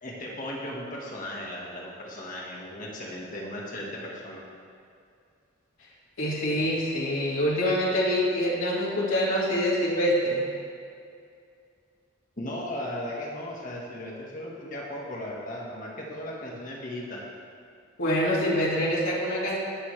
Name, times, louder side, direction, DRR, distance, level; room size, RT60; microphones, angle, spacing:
voice 1, 0.0-4.4 12.4-17.2, left 1 dB, 40° left, -3 dB, 1.6 m, -36 dB
voice 2, 6.2-10.5 18.0-19.6, equal, 85° left, -6 dB, 2.2 m, -25 dB
20.0 x 7.0 x 3.3 m, 2.4 s
head